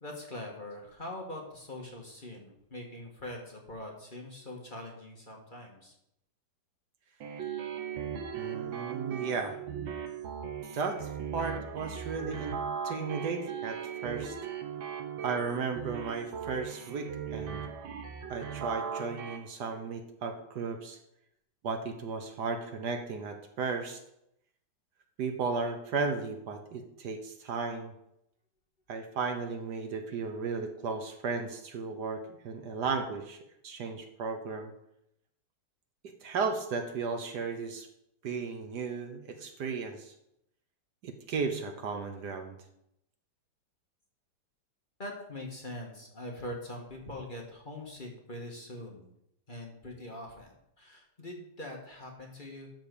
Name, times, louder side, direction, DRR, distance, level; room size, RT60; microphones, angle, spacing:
voice 1, 0.0-5.9 45.0-49.1 49.5-52.7, left 1 dB, 30° left, -1 dB, 1.6 m, -43 dB
sound 1, 7.2-19.4, right 7 dB, 80° right, 1.8 m, -38 dB
voice 2, 8.4-9.6 10.7-14.4 15.2-17.6 18.3-21.0 21.6-24.0 25.2-27.9 28.9-33.4 33.6-34.7 36.0-37.9 38.2-40.1 41.0-42.6, right 4 dB, 65° right, 6 dB, 1.4 m, -35 dB
12.0 x 4.1 x 6.7 m, 0.80 s
omnidirectional pair, 2.0 m